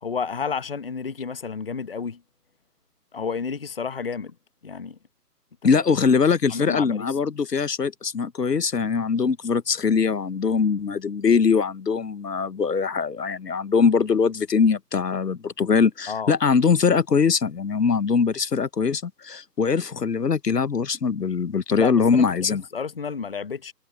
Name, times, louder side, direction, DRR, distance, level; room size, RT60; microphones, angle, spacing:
voice 1, 0.0-2.2 3.1-4.3 4.6-5.0 5.8-5.9 6.5-7.1 16.1-16.3 21.8-23.7, left 5 dB, 35° left, 1.0 m, -31 dB
voice 2, 5.6-22.6, left 5 dB, 75° left, 1.1 m, -22 dB
figure-of-eight pair, 160°, 48 cm